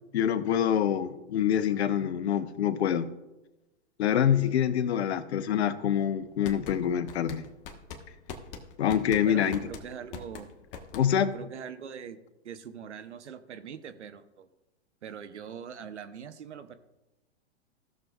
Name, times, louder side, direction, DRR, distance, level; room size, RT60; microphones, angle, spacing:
voice 1, 0.1-3.1 4.0-7.5 8.8-9.6 10.9-11.3, left 9 dB, 70° left, 13 dB, 0.8 m, -26 dB
sound 1, 6.2-11.4, left 6 dB, 50° left, 1.2 m, -43 dB
voice 2, 9.2-10.5 11.3-12.2 12.4-14.5 15.0-16.7, right 8 dB, 80° right, 11 dB, 0.8 m, -42 dB
16.0 x 6.6 x 2.3 m, 1.0 s
hypercardioid pair, 115°, 34 cm